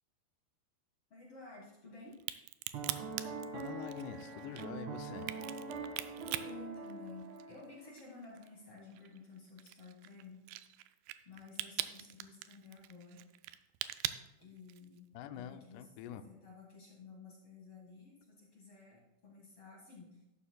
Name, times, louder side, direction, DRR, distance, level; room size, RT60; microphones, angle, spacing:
voice 1, 1.1-2.2 6.1-10.4 11.3-13.2 14.4-15.1 15.3-15.9 16.3-20.2, left 3 dB, 45° left, -3 dB, 2.0 m, -53 dB
Crack, 2.1-7.6 8.0-15.0, right 14 dB, 85° right, 2.2 m, -42 dB
Piano, 2.7-8.0, right 4 dB, 65° right, 2.1 m, -44 dB
voice 2, 3.5-5.3 15.1-16.3, left 9 dB, 80° left, 9 dB, 2.7 m, -46 dB
14.0 x 11.5 x 2.3 m, 0.96 s
omnidirectional pair, 4.9 m